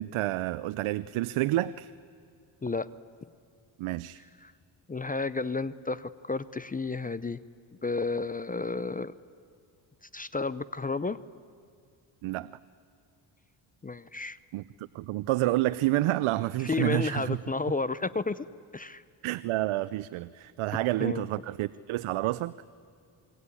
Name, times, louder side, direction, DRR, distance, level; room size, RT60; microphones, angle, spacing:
voice 1, 0.0-1.9 3.8-4.2 12.2-12.5 14.5-17.4 19.2-22.5, right 16 dB, 85° right, 15 dB, 0.7 m, -29 dB
voice 2, 4.9-7.4 7.8-9.1 10.1-11.2 13.8-14.4 16.6-18.5 18.7-19.0 21.0-21.2, left 3 dB, 20° left, 17 dB, 0.6 m, -31 dB
27.0 x 22.5 x 9.8 m, 2.3 s
cardioid pair, 100°, 48 cm